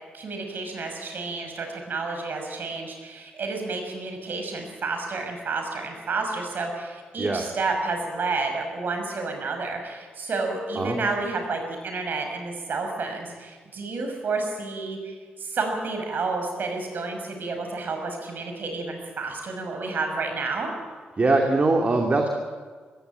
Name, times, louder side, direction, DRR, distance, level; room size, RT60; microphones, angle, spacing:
voice 1, 0.1-20.7, right 3 dB, 60° right, 4 dB, 6.0 m, -30 dB
voice 2, 21.2-22.3, right 3 dB, 40° right, 2 dB, 2.6 m, -22 dB
20.0 x 16.0 x 9.0 m, 1.6 s
cardioid pair, 70°, 4 cm